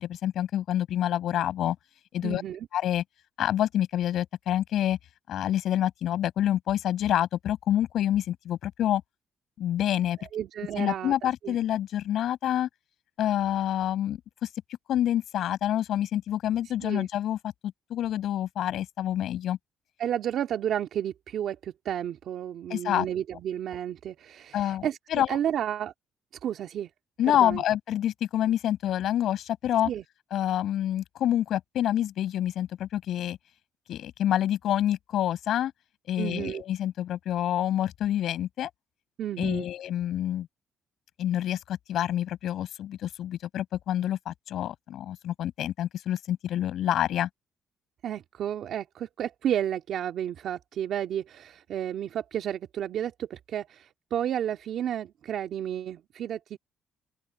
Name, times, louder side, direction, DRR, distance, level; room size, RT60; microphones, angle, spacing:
voice 1, 0.0-1.8 2.1-2.4 2.7-3.0 3.4-5.0 5.3-9.0 9.6-10.2 10.8-12.7 13.2-14.5 14.9-19.6 22.7-23.1 24.5-25.3 27.2-29.9 30.3-33.4 33.9-35.7 36.1-38.7 39.4-40.5 41.2-47.3, left 11 dB, 75° left, 7.6 m, -27 dB
voice 2, 2.2-2.7 10.2-11.6 16.8-17.1 20.0-25.9 26.4-26.9 27.3-27.6 29.9-30.0 36.2-36.6 39.2-39.7 48.0-56.6, right 10 dB, 70° right, 2.4 m, -32 dB
open air
cardioid pair, 90°, 0 cm